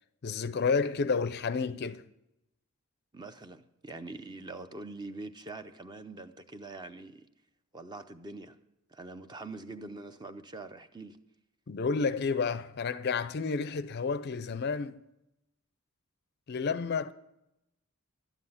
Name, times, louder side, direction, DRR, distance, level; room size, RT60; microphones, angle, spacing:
voice 1, 0.2-2.1 11.7-15.0 16.5-17.1, left 5 dB, 45° left, 0.4 m, -30 dB
voice 2, 3.1-7.3 7.7-8.6 8.9-11.2, right 2 dB, 20° right, 0.5 m, -44 dB
12.5 x 9.9 x 5.6 m
head